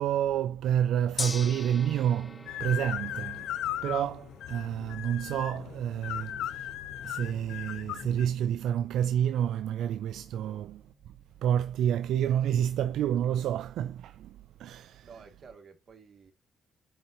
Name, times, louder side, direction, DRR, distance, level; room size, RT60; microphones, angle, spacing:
voice 1, 0.0-3.5 3.8-6.7 7.0-10.8 11.4-15.4, right 10 dB, 80° right, 0.3 m, -29 dB
Gong, 1.2-11.4, left 3 dB, 25° left, 0.9 m, -45 dB
sound 1, 2.5-8.2, left 11 dB, 85° left, 0.6 m, -37 dB
voice 2, 15.0-16.3, right 5 dB, 50° right, 2.2 m, -52 dB
9.3 x 3.9 x 2.9 m
cardioid pair, 85°, 0 cm